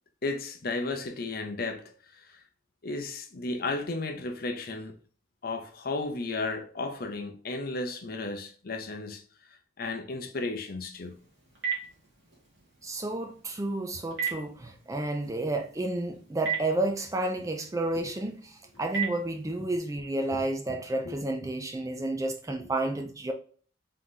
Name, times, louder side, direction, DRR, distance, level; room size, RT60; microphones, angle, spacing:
voice 1, 0.2-1.9 2.3-2.4 2.8-4.9 5.4-9.2 9.8-11.2 19.6-19.7 20.3-20.4 21.0-21.2, left 3 dB, 50° left, 0.6 m, -34 dB
Telephone, 10.9-19.8, right 7 dB, 65° right, 1.6 m, -39 dB
voice 2, 12.8-23.3, right 2 dB, 15° right, 0.4 m, -31 dB
3.8 x 2.9 x 3.7 m
head